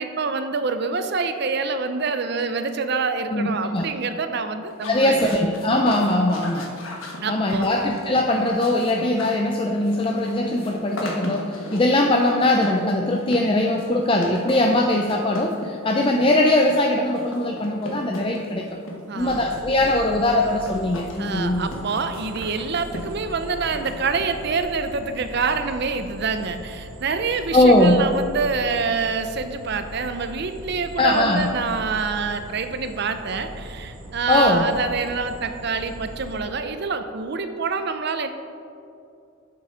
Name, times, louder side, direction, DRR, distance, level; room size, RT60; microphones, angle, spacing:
voice 1, 0.0-5.4 7.2-7.7 19.1-19.6 21.2-38.3, right 4 dB, 55° right, 9 dB, 0.6 m, -26 dB
voice 2, 3.3-3.9 4.9-6.7 7.3-18.7 19.1-21.7 27.5-28.1 31.0-31.5 34.3-34.6, left 1 dB, 25° left, 1 dB, 0.5 m, -20 dB
sound 1, 4.7-24.6, left 1 dB, 75° left, 1.4 m, -38 dB
sound 2, 19.2-36.4, equal, 90° right, 1.9 m, -40 dB
7.5 x 7.2 x 5.0 m, 2.5 s
head